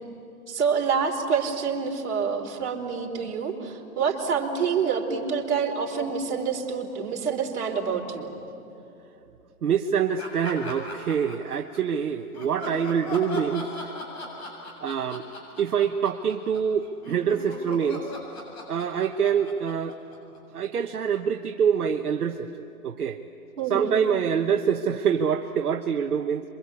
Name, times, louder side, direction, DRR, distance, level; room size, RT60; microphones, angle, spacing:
voice 1, 0.5-8.3 23.6-23.9, right 6 dB, 50° right, 0 dB, 4.2 m, -27 dB
voice 2, 9.6-13.7 14.8-15.2 15.6-18.1 18.7-20.0 20.5-23.2 23.7-26.4, right 7 dB, 75° right, 4 dB, 1.2 m, -25 dB
sound 1, 10.2-11.8 12.3-20.6, left 2 dB, 45° left, 7.6 m, -38 dB
27.5 x 24.5 x 8.5 m, 2.7 s
hypercardioid pair, 160°, 45 cm